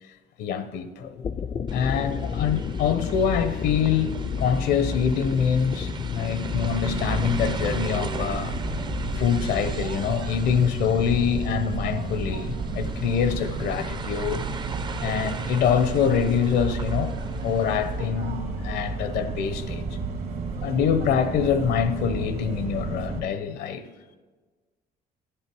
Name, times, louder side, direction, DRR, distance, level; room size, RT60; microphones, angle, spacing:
voice 1, 0.4-1.2 1.7-8.5 9.2-14.4 15.0-17.1 17.4-19.9 20.6-23.8, left 7 dB, 75° left, 0.8 m, -25 dB
sound 1, 1.0-20.7, left 6 dB, 30° left, 0.4 m, -34 dB
sound 2, 1.7-18.1, right 5 dB, 25° right, 0.5 m, -38 dB
sound 3, 6.5-23.2, right 4 dB, 70° right, 1.9 m, -32 dB
11.5 x 9.9 x 4.7 m
cardioid pair, 110°, 17 cm